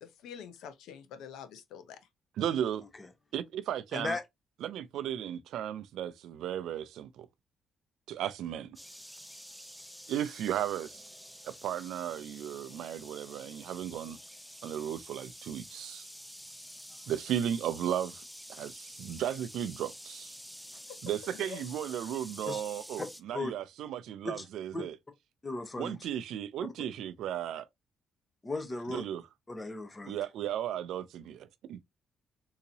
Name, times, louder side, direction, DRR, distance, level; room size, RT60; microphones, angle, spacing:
voice 1, 0.0-2.0 20.7-21.0 21.2-21.7, left 8 dB, 85° left, 0.6 m, -46 dB
voice 2, 2.4-2.8 3.3-4.2 4.6-7.3 8.1-8.8 10.1-11.1 11.4-14.2 14.6-16.1 17.1-18.2 18.5-20.3 21.0-24.9 25.8-27.7 28.9-29.2 30.0-31.8, right 10 dB, 80° right, 0.4 m, -35 dB
voice 3, 3.9-4.2 22.4-22.6 23.0-23.1 23.3-23.5 24.2-24.5 24.7-24.8 25.4-26.0 28.4-29.0 29.5-30.2, left 2 dB, 25° left, 0.9 m, -36 dB
sound 1, 8.8-23.2, equal, ahead, 0.6 m, -49 dB
3.8 x 2.8 x 2.7 m
cardioid pair, 90°, 0 cm